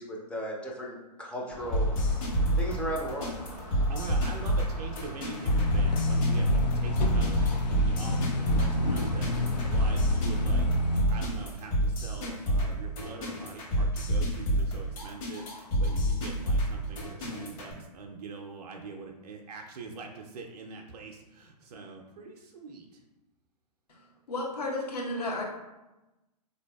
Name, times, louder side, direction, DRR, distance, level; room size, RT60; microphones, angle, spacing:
voice 1, 0.0-3.3, equal, 5° left, -2 dB, 0.4 m, -36 dB
sound 1, 1.5-11.3, left 1 dB, 30° left, 0.8 m, -44 dB
sound 2, 1.7-17.7, equal, 55° left, 1.3 m, -28 dB
voice 2, 3.9-10.8 11.1-23.0, right 4 dB, 65° right, 2 dB, 0.4 m, -44 dB
sound 3, 5.4-11.0, left 1 dB, 85° left, 0.4 m, -28 dB
voice 3, 24.3-25.4, left 2 dB, 70° left, -1 dB, 0.9 m, -32 dB
3.8 x 2.6 x 2.2 m, 1.0 s
figure-of-eight pair, 115°, 21 cm